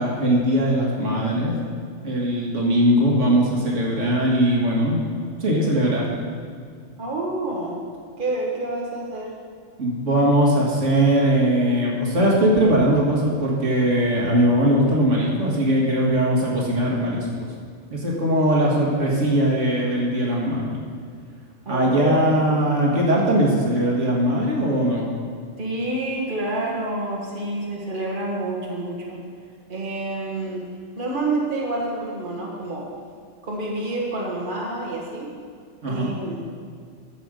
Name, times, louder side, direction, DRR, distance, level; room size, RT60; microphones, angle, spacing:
voice 1, 0.0-1.6 2.0-5.0 5.4-6.1 9.8-17.3 17.9-20.6 21.7-25.1 35.8-36.2, right 1 dB, 70° right, -2 dB, 2.0 m, -20 dB
voice 2, 7.0-7.8 8.2-9.3 21.7-22.7 25.6-29.2 29.7-30.7 31.0-32.9 33.4-35.3 35.9-36.5, right 2 dB, 40° right, -3 dB, 1.8 m, -28 dB
13.5 x 5.2 x 6.3 m, 2.1 s
omnidirectional pair, 1.3 m